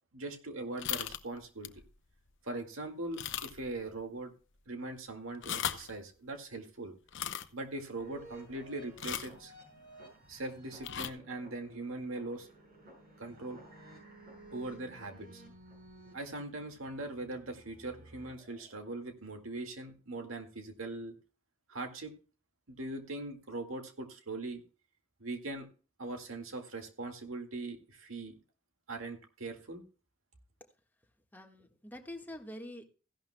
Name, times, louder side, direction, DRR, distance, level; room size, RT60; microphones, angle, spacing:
voice 1, 0.1-1.8 2.4-4.3 4.7-6.9 7.5-9.5 10.3-12.5 13.2-13.6 14.5-15.4 16.1-21.1 21.7-22.1 22.7-24.6 25.2-25.7 26.0-28.4 28.9-29.8, right 2 dB, 85° right, 4 dB, 2.0 m, -41 dB
sound 1, 0.8-1.2 1.6-1.8 2.3-2.4 3.1-3.7 4.0-4.1 5.3-5.9 7.1-7.4 9.0-9.4 10.8-11.1, left 10 dB, 65° left, 0.7 m, -37 dB
sound 2, 8.0-19.0, right 1 dB, 50° right, 6.6 m, -55 dB
voice 2, 31.3-32.9, left 1 dB, 10° left, 3 dB, 1.5 m, -46 dB
15.5 x 11.5 x 2.2 m, 0.37 s
head